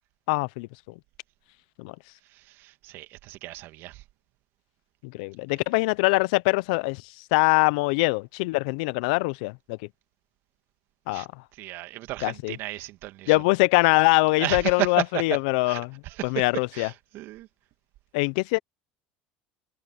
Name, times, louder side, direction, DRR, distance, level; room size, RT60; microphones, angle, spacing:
voice 1, 0.3-0.7 1.8-1.9 5.0-7.0 7.3-9.8 11.1-11.3 12.2-12.6 13.3-16.9 18.1-18.6, left 25 dB, 70° left, 0.9 m, -23 dB
voice 2, 2.8-3.9 11.1-11.3 11.6-13.3 14.4-14.9 15.7-15.8 16.7-17.5, right 17 dB, 60° right, 1.9 m, -34 dB
hypercardioid pair, 80°, 4 cm